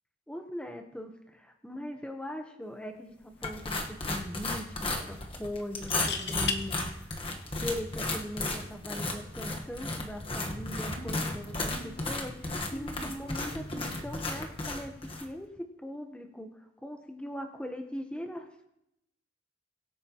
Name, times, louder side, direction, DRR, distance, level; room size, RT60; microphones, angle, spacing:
voice 1, 0.3-6.9 7.6-15.0 15.2-18.6, left 1 dB, 5° left, 4 dB, 0.9 m, -40 dB
sound 1, 2.9-3.2 3.5-3.6 5.8-6.6 8.4-8.7, left 6 dB, 65° left, 1.1 m, -34 dB
sound 2, 3.4-15.3, left 2 dB, 30° left, 1.2 m, -35 dB
sound 3, 10.5-14.3, equal, 50° left, 4.0 m, -45 dB
22.5 x 8.6 x 2.9 m, 0.85 s
head